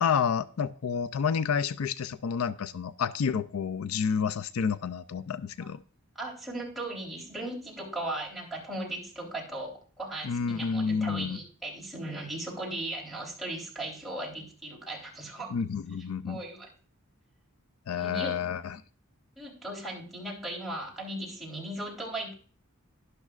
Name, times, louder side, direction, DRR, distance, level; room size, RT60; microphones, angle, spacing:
voice 1, 0.0-5.8 10.2-11.4 15.5-16.4 17.9-18.8, left 6 dB, 80° left, 0.4 m, -29 dB
voice 2, 6.2-15.5 16.3-16.7 17.9-18.3 19.4-22.3, right 1 dB, ahead, 3.6 m, -37 dB
12.0 x 11.0 x 2.4 m
head